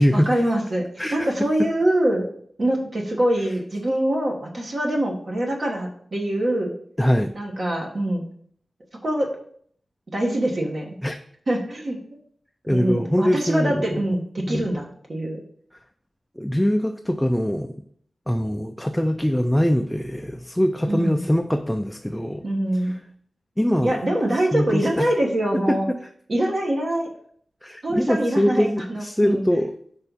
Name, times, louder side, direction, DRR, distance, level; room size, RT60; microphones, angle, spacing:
voice 1, 0.1-0.8 1.1-2.3 2.6-6.7 7.3-8.3 9.0-9.3 10.1-11.0 11.5-12.0 12.7-15.4 20.9-21.2 22.4-22.9 23.8-25.9 26.3-27.1 27.8-29.4, right 1 dB, 50° right, 0 dB, 1.2 m, -24 dB
voice 2, 7.0-7.3 11.0-11.2 12.7-14.0 14.5-14.7 16.4-17.7 18.3-22.4 23.6-24.0 24.5-25.1 25.7-26.0 27.6-29.7, equal, 5° left, 5 dB, 0.4 m, -22 dB
5.5 x 3.5 x 5.5 m, 0.62 s
wide cardioid pair, 100°, 0 cm